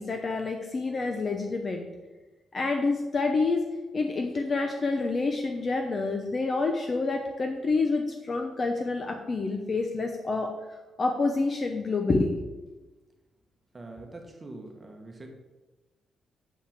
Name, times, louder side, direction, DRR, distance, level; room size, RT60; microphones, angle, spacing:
voice 1, 0.0-1.9 2.5-3.7 3.9-12.4, left 3 dB, 30° left, 4 dB, 0.7 m, -28 dB
voice 2, 13.7-15.3, right 2 dB, 20° right, 2 dB, 1.2 m, -44 dB
6.7 x 5.4 x 7.2 m, 1.2 s
cardioid pair, 155°, 0 cm